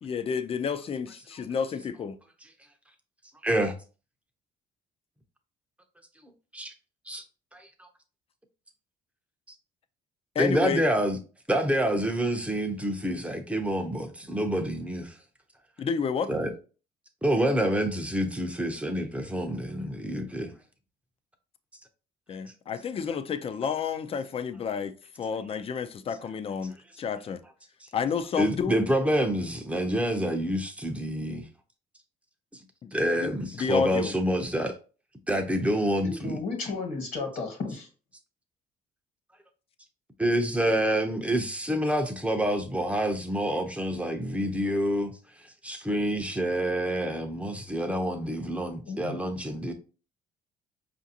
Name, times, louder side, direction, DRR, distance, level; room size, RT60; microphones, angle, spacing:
voice 1, 0.0-2.2 10.3-10.8 15.8-16.3 22.3-27.4 27.9-28.9 32.8-34.1, left 6 dB, 35° left, 0.4 m, -30 dB
voice 2, 3.4-3.7 6.5-6.7 7.1-7.2 7.5-7.9 10.4-11.2 11.5-15.2 16.3-16.5 17.2-20.5 28.4-31.4 32.9-34.8 35.3-36.4 40.2-45.1 45.6-49.7, equal, 5° right, 0.6 m, -27 dB
voice 3, 36.0-37.9 48.9-49.2, left 3 dB, 60° left, 1.3 m, -33 dB
5.0 x 2.5 x 2.7 m
cardioid pair, 110°, 17 cm